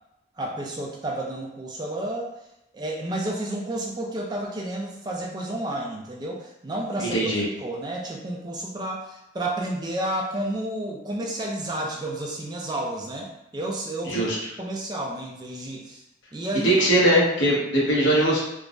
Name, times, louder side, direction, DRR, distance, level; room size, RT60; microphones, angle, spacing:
voice 1, 0.4-2.3 2.7-7.2 7.6-14.3 14.6-16.0 16.3-16.7, right 1 dB, 20° right, 0 dB, 0.3 m, -31 dB
voice 2, 7.0-7.5 14.1-14.4 16.6-18.4, right 1 dB, 80° left, -5 dB, 0.9 m, -20 dB
3.3 x 2.0 x 2.4 m, 0.84 s
head